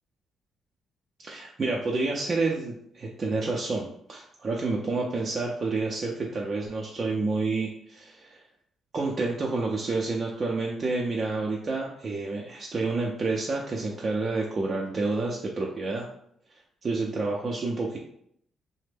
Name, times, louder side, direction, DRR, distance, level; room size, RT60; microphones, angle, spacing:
voice 1, 1.2-8.4 8.9-16.1 16.5-18.0, right 3 dB, 40° right, -2 dB, 0.5 m, -29 dB
3.2 x 2.0 x 3.3 m, 0.69 s
cardioid pair, 90°, 0 cm